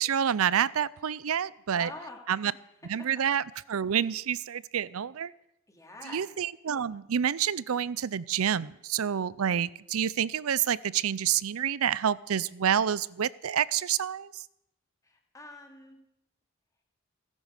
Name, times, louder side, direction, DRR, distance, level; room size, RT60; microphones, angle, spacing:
voice 1, 0.0-1.9 2.3-2.5 2.9-3.4 3.7-5.3 6.1-14.3, right 8 dB, 70° right, 21 dB, 0.5 m, -28 dB
voice 2, 1.7-2.5 5.7-6.2 15.0-16.0, left 2 dB, 15° left, 1 dB, 2.5 m, -45 dB
17.0 x 10.5 x 6.6 m, 0.85 s
head